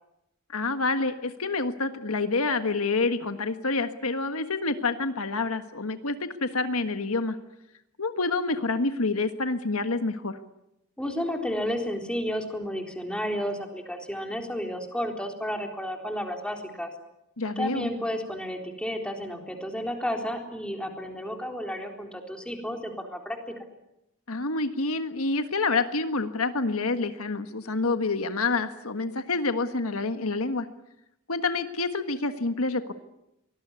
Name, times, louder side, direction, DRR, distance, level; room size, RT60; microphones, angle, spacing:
voice 1, 0.5-7.4 8.0-10.4 17.4-17.9 24.3-30.7 31.3-32.9, left 3 dB, 70° left, 9 dB, 1.6 m, -28 dB
voice 2, 11.0-16.9 17.6-23.4, equal, 5° left, 3 dB, 3.9 m, -32 dB
24.5 x 20.0 x 9.7 m, 0.85 s
head